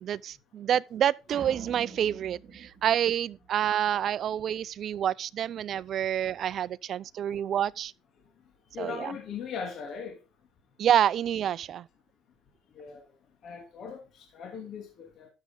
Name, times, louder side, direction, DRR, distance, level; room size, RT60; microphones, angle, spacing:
voice 1, 0.0-7.9 8.8-9.1 10.8-11.9, right 10 dB, 50° right, 0.5 m, -28 dB
sound 1, 1.3-3.8, right 5 dB, 35° right, 3.1 m, -46 dB
voice 2, 8.7-10.2 12.7-13.1 13.4-15.3, left 6 dB, 55° left, 2.9 m, -39 dB
12.0 x 7.6 x 3.8 m
cardioid pair, 110°, 0 cm